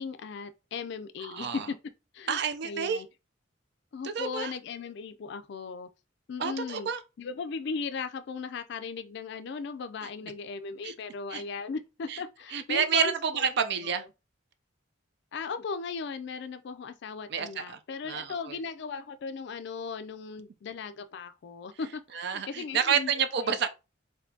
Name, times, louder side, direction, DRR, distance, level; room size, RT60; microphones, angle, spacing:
voice 1, 0.0-1.8 2.1-2.4 2.6-3.1 3.9-5.9 6.3-6.9 7.2-13.4 13.8-14.0 15.3-23.1 23.4-23.5, left 5 dB, 60° left, 0.4 m, -37 dB
voice 2, 1.3-1.7 2.3-3.0 4.0-4.5 6.4-7.0 10.8-10.9 11.3-11.4 12.1-12.2 12.5-14.0 17.3-17.8 18.1-18.6 22.1-23.7, right 7 dB, 60° right, 0.5 m, -29 dB
4.3 x 2.7 x 2.7 m
head